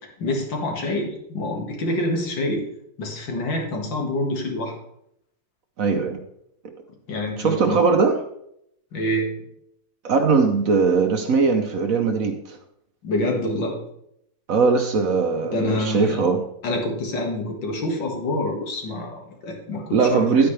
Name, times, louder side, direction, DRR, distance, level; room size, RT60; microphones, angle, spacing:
voice 1, 0.2-2.6 3.0-4.7 7.1-7.8 8.9-9.3 13.0-13.8 15.4-16.2 16.6-20.5, left 1 dB, 80° left, 1 dB, 2.5 m, -26 dB
voice 2, 5.8-6.2 7.4-8.2 10.0-12.6 14.5-16.4 19.9-20.5, right 4 dB, 60° right, 6 dB, 1.0 m, -20 dB
10.0 x 9.0 x 3.3 m, 0.76 s
omnidirectional pair, 2.0 m